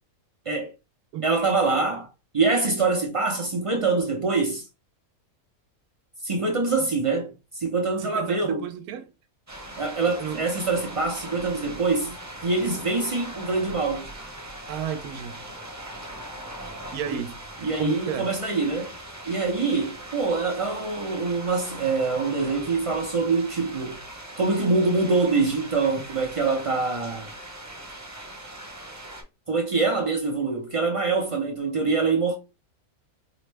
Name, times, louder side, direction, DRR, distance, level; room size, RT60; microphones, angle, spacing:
voice 1, 1.2-2.1 2.3-4.6 6.2-8.6 9.8-12.2 12.4-14.1 17.6-18.9 19.3-24.0 24.4-27.3 29.5-32.3, right 3 dB, 55° right, 0.3 m, -24 dB
voice 2, 8.0-9.1 10.2-10.5 14.7-15.5 16.9-18.3, right 8 dB, 85° right, 1.1 m, -33 dB
sound 1, 9.5-29.2, right 1 dB, 15° right, 0.7 m, -40 dB
4.8 x 2.0 x 3.3 m
omnidirectional pair, 1.6 m